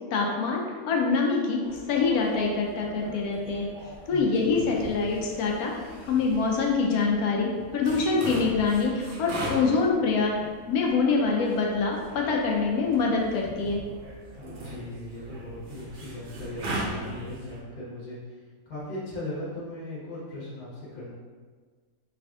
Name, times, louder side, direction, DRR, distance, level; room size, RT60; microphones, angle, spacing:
voice 1, 0.1-1.6 1.9-3.7 4.1-5.7 6.0-10.3 10.7-13.8, left 4 dB, 85° left, -1 dB, 1.1 m, -25 dB
sound 1, 1.6-17.6, right 1 dB, 70° right, 0.5 m, -40 dB
voice 2, 4.1-4.6 14.4-18.4 18.7-21.1, left 1 dB, 40° left, -8 dB, 1.2 m, -38 dB
3.3 x 2.5 x 3.5 m, 1.5 s
omnidirectional pair, 1.5 m